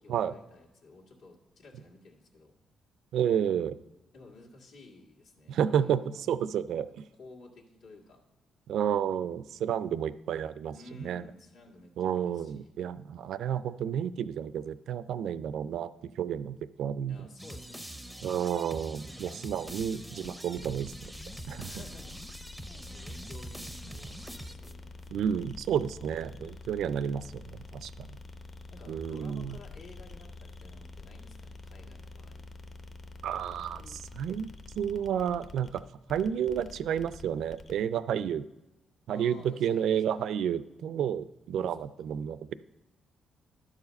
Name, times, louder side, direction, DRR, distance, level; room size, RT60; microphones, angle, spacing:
voice 1, 0.0-2.5 4.1-6.2 7.0-8.2 10.7-12.7 17.1-18.0 19.0-19.4 21.7-22.1 22.9-25.0 26.3-26.4 26.8-27.0 28.7-32.4 33.5-34.0 39.1-40.3 41.6-41.8, left 2 dB, 80° left, -2 dB, 1.9 m, -53 dB
voice 2, 3.1-3.8 5.5-6.9 8.7-11.2 12.0-15.9 16.2-17.2 18.2-20.9 21.5-21.7 25.1-28.1 28.9-29.6 33.2-33.8 34.2-35.8 36.1-38.4 39.1-42.5, right 9 dB, 75° right, 16 dB, 0.4 m, -31 dB
sound 1, 17.4-25.0, right 1 dB, 5° right, 0.5 m, -44 dB
sound 2, 19.6-37.8, left 3 dB, 40° left, 0.7 m, -47 dB
11.5 x 4.9 x 5.2 m, 0.98 s
cardioid pair, 130°, 0 cm